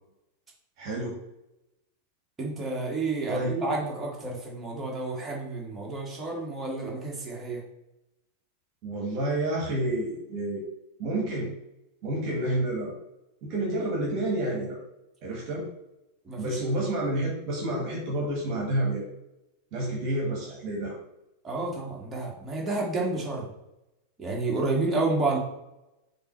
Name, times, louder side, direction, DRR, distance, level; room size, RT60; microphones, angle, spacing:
voice 1, 0.8-1.2 3.3-3.5 8.8-10.6 11.0-11.5 12.0-12.9 13.4-14.8 15.2-15.6 16.4-19.1 19.7-21.0, right 1 dB, 40° right, -1 dB, 1.7 m, -29 dB
voice 2, 2.4-7.6 16.3-16.6 21.4-23.5 24.2-25.4, right 3 dB, 15° right, -3 dB, 2.0 m, -30 dB
6.7 x 3.2 x 4.6 m, 0.88 s
figure-of-eight pair, 90°, 0 cm